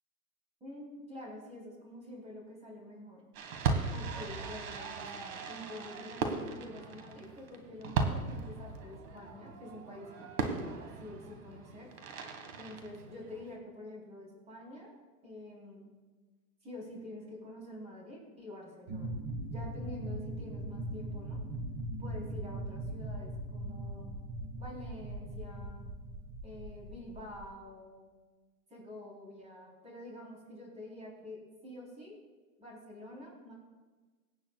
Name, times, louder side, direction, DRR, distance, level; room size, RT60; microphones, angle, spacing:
voice 1, 0.6-3.3 3.9-11.9 12.6-14.9 15.2-15.9 16.6-19.2 19.5-21.4 22.0-24.2 24.6-25.9 26.4-28.1 28.7-32.2 32.6-33.5, left 1 dB, 15° right, -3 dB, 3.9 m, -47 dB
Fireworks, 3.3-13.6, right 4 dB, 65° right, 1.8 m, -37 dB
sound 1, 18.9-27.5, right 1 dB, 35° right, 1.6 m, -40 dB
24.5 x 8.8 x 2.4 m, 1.3 s
supercardioid pair, 155°, 44 cm